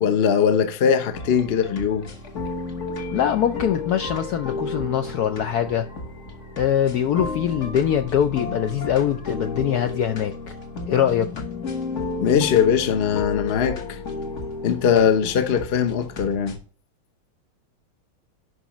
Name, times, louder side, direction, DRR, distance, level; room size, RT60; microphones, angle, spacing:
voice 1, 0.0-2.1 12.2-14.0 14.6-16.6, left 7 dB, 60° left, 0.6 m, -20 dB
sound 1, 1.1-16.6, left 3 dB, 40° left, 1.3 m, -33 dB
voice 2, 3.1-5.9 6.6-10.3 10.9-11.4, left 9 dB, 85° left, 0.8 m, -23 dB
11.0 x 5.4 x 3.0 m
omnidirectional pair, 2.3 m